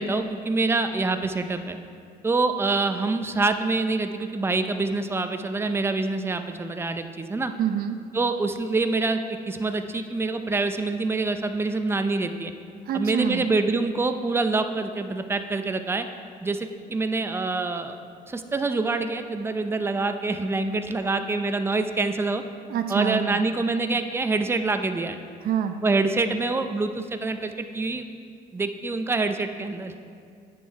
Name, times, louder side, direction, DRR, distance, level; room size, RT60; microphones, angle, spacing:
voice 1, 0.0-1.8 2.2-7.5 8.1-12.5 12.9-16.1 16.4-18.0 18.3-22.4 22.9-25.2 25.8-28.0 28.5-30.0, right 3 dB, 15° right, 8 dB, 0.5 m, -26 dB
voice 2, 7.6-8.0 12.9-13.5 22.7-23.4 25.4-25.8, right 8 dB, 60° right, 7 dB, 0.6 m, -26 dB
9.1 x 7.1 x 4.7 m, 2.3 s
cardioid pair, 110°, 17 cm